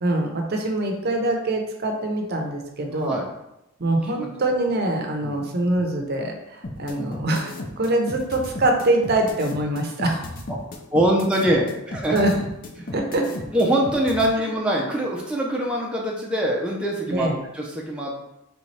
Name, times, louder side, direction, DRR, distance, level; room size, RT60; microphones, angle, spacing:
voice 1, 0.0-3.2 3.8-10.2 12.1-12.3 12.9-13.2 17.1-17.4, right 1 dB, 50° right, 2 dB, 0.7 m, -24 dB
voice 2, 2.9-3.2 4.0-4.3 5.2-5.4 6.9-7.2 10.5-10.6 10.9-12.2 13.5-17.3 17.5-18.2, right 1 dB, 5° right, -3 dB, 0.5 m, -23 dB
sound 1, 6.6-14.3, left 2 dB, 40° left, 0.6 m, -34 dB
4.0 x 3.4 x 3.2 m, 0.87 s
head